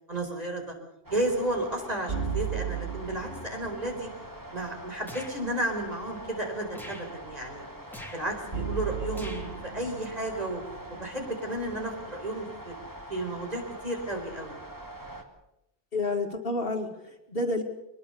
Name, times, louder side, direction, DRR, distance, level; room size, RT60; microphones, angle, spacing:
voice 1, 0.1-0.7 1.1-4.1 4.5-7.6 8.1-10.6 10.9-12.7 13.1-14.5, right 1 dB, 35° right, 2 dB, 4.8 m, -32 dB
sound 1, 1.0-15.2, right 1 dB, 15° right, 2.3 m, -44 dB
sound 2, 2.1-4.3 8.5-11.7, right 7 dB, 55° right, 2.8 m, -35 dB
sound 3, 5.1-5.4 6.7-7.1 7.9-8.2 9.1-9.5, left 1 dB, ahead, 3.2 m, -43 dB
voice 2, 15.9-17.6, left 2 dB, 50° left, 3 dB, 2.3 m, -30 dB
23.0 x 20.5 x 6.9 m, 0.86 s
omnidirectional pair, 1.2 m